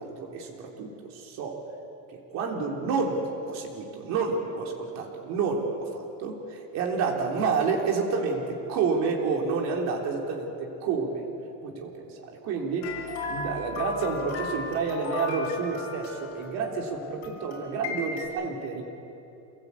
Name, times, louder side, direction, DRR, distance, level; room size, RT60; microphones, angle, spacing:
voice 1, 0.0-1.6 2.1-11.3 11.6-12.9 13.3-18.8, right 4 dB, 55° right, 0 dB, 3.8 m, -29 dB
sound 1, 12.8-18.3, left 4 dB, 50° left, 6.4 m, -36 dB
27.5 x 17.5 x 8.5 m, 3.0 s
cardioid pair, 155°, 32 cm